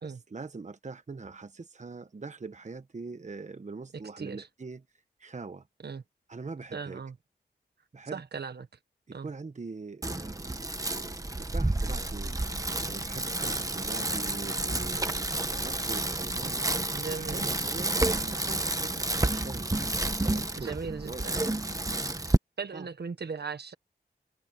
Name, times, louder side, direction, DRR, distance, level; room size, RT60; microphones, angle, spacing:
voice 1, 0.0-4.8 5.2-5.7 6.3-7.0 7.9-8.2 9.1-16.6 17.1-19.7 20.2-20.8 21.0-21.5 22.7-22.9, right 4 dB, 45° right, 1.1 m, -43 dB
voice 2, 4.2-4.5 5.8-6.0 6.7-7.1 8.1-8.7 9.1-9.3 16.9-17.5 20.6-21.4 22.3-23.7, right 5 dB, 70° right, 1.4 m, -38 dB
Bicycle, 10.0-22.4, right 2 dB, 20° right, 1.2 m, -30 dB
wide cardioid pair, 65°, 18 cm